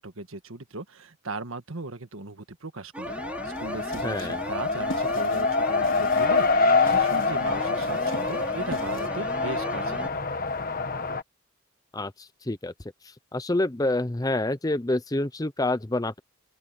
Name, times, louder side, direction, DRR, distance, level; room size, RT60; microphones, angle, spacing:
voice 1, 0.0-3.1 3.4-10.2, right 2 dB, 75° right, 1.6 m, -38 dB
sound 1, 2.9-10.1, right 1 dB, 5° right, 3.0 m, -37 dB
Race car auto racing, 3.1-11.2, left 4 dB, 40° left, 1.3 m, -26 dB
sound 2, 3.5-9.1, left 2 dB, 65° left, 3.6 m, -43 dB
voice 2, 4.0-4.4 11.9-12.7 13.3-16.2, left 2 dB, 15° left, 0.6 m, -27 dB
open air
head